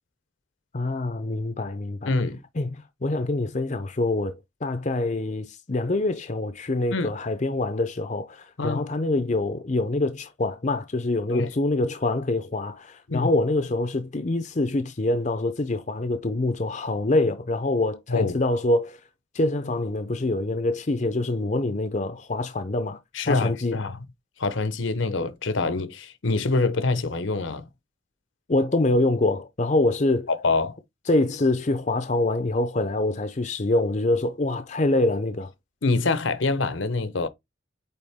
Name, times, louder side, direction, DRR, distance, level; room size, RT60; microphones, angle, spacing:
voice 1, 0.7-2.1 2.6-19.0 19.3-23.0 23.3-23.8 28.5-30.3 31.1-35.5, left 2 dB, 35° left, 0.6 m, -25 dB
voice 2, 2.1-2.4 6.9-7.1 8.6-8.8 11.3-11.5 13.1-13.3 18.1-18.4 23.1-24.0 24.4-27.7 30.3-30.8 35.8-37.3, left 3 dB, 70° left, 0.9 m, -25 dB
8.7 x 3.6 x 3.5 m
head